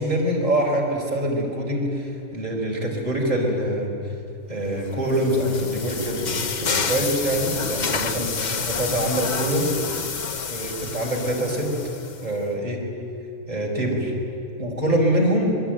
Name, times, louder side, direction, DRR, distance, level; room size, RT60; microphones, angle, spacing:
voice 1, 0.0-3.9 4.5-8.4 8.7-9.8 10.3-11.7 12.2-12.8 13.5-14.1 14.6-15.6, right 1 dB, 25° right, -2 dB, 4.7 m, -24 dB
sound 1, 4.8-12.3, left 5 dB, 45° left, 0.6 m, -29 dB
26.5 x 21.5 x 9.2 m, 2.6 s
omnidirectional pair, 1.6 m